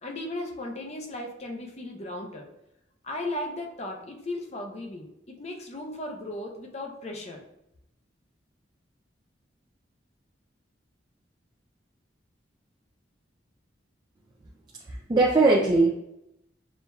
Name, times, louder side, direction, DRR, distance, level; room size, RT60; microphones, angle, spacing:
voice 1, 0.0-2.5 3.0-7.4, left 1 dB, 35° left, 1 dB, 0.6 m, -36 dB
voice 2, 14.9-15.9, right 3 dB, 25° right, -3 dB, 0.4 m, -20 dB
6.4 x 2.8 x 2.2 m, 0.84 s
head